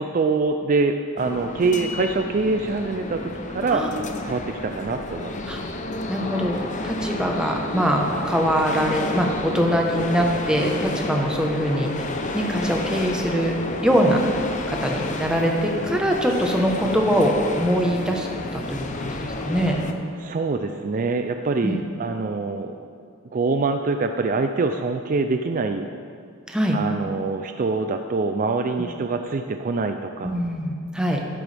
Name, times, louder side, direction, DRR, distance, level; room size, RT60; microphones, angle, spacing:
voice 1, 0.0-3.8 4.2-5.4 20.2-22.8 23.3-25.9 26.7-30.4, right 3 dB, 40° right, 6 dB, 0.4 m, -24 dB
sound 1, 1.2-19.9, left 2 dB, 35° left, 0.7 m, -31 dB
voice 2, 6.1-12.1 12.3-13.5 13.8-14.2 14.7-18.3 18.5-19.8 21.6-21.8 26.5-26.8 30.2-31.2, equal, 5° right, 0 dB, 1.0 m, -23 dB
12.5 x 11.0 x 3.4 m, 2.3 s
head